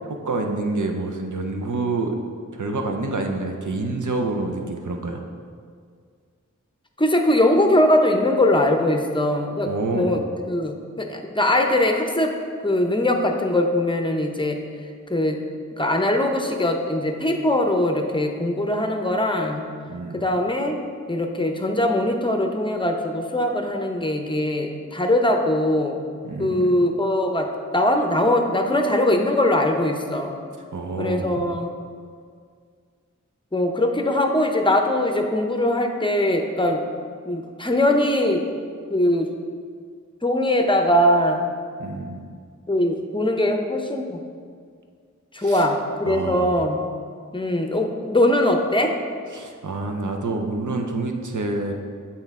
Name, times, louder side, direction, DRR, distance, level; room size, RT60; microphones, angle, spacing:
voice 1, 0.2-2.2 2.5-5.2 9.6-10.2 19.9-20.2 26.2-26.7 30.7-31.4 41.8-42.2 45.4-45.6 46.1-46.6 49.3-51.7, right 2 dB, 75° right, 3 dB, 0.7 m, -27 dB
voice 2, 7.0-12.3 12.6-14.6 15.1-15.4 15.8-19.7 20.1-20.8 21.1-26.0 26.4-30.3 31.0-31.7 33.5-36.8 37.3-38.4 38.9-39.3 40.2-41.4 42.7-44.2 45.3-46.8 47.3-48.9, left 1 dB, 15° left, 4 dB, 0.6 m, -21 dB
7.8 x 4.4 x 3.6 m, 2.1 s
wide cardioid pair, 45°, 30 cm